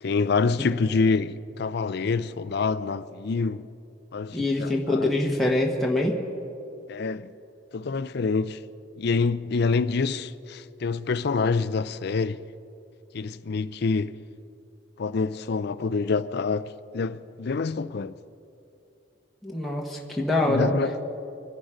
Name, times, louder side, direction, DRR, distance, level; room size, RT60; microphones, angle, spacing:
voice 1, 0.0-3.7 4.1-5.1 6.9-7.3 7.7-8.6 9.0-12.4 13.1-14.1 15.0-18.1 20.5-20.9, left 4 dB, 55° left, 0.4 m, -26 dB
voice 2, 4.3-6.2 19.4-20.7, left 2 dB, ahead, 1.3 m, -24 dB
24.0 x 10.5 x 5.1 m
head